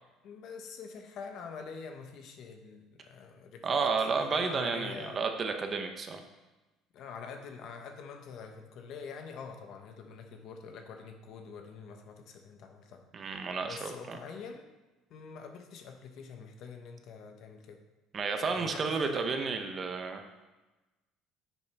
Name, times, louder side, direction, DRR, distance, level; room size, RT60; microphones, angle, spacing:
voice 1, 0.2-3.8 4.1-5.3 6.9-13.0 13.6-14.7 15.1-17.8 18.5-19.4, left 5 dB, 55° left, 5 dB, 1.0 m, -45 dB
voice 2, 3.6-6.2 13.1-14.2 18.1-20.2, right 4 dB, 30° right, 5 dB, 0.8 m, -31 dB
10.0 x 6.1 x 3.4 m, 1.1 s
cardioid pair, 155°, 0 cm